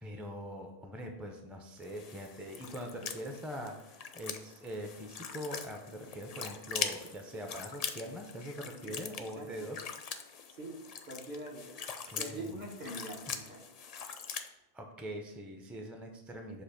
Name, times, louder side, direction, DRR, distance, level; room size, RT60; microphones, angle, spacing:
voice 1, 0.0-9.8 12.1-12.6 13.2-13.4 14.7-16.6, equal, ahead, 3 dB, 0.5 m, -43 dB
sound 1, 1.8-14.5, left 6 dB, 55° left, 0.5 m, -42 dB
voice 2, 9.3-9.7 10.6-10.8 11.1-11.8 12.1-13.6, right 1 dB, 45° right, 0 dB, 1.2 m, -43 dB
6.7 x 2.7 x 5.6 m, 0.92 s
omnidirectional pair, 1.0 m